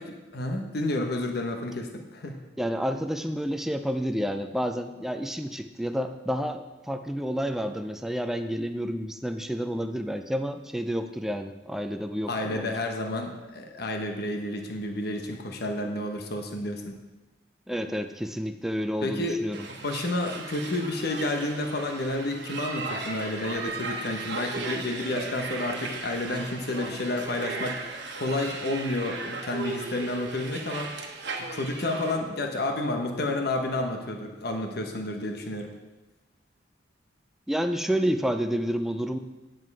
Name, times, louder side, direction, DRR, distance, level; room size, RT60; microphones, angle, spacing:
voice 1, 0.3-2.4 12.3-16.9 19.0-31.0 31.4-35.7, left 2 dB, 60° left, 4 dB, 1.1 m, -30 dB
voice 2, 2.6-12.7 17.7-19.7 37.5-39.2, equal, ahead, 7 dB, 0.5 m, -30 dB
sound 1, 19.5-32.2, right 3 dB, 65° right, 1.3 m, -37 dB
9.7 x 7.7 x 4.7 m, 1.1 s
head